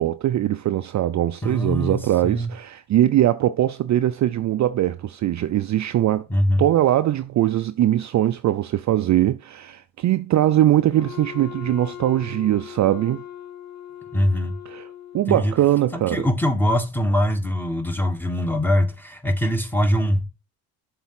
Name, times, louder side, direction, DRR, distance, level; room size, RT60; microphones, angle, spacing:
voice 1, 0.0-6.3 6.6-13.2 14.7-14.9 15.1-16.3, right 13 dB, 45° right, 0.5 m, -21 dB
voice 2, 1.4-2.5 6.3-6.6 14.1-14.6 15.3-15.5 15.9-20.3, equal, 5° left, 1.3 m, -22 dB
Wind instrument woodwind instrument, 10.9-15.6, left 11 dB, 40° left, 1.4 m, -39 dB
7.1 x 3.6 x 5.8 m
supercardioid pair, 70°, 42 cm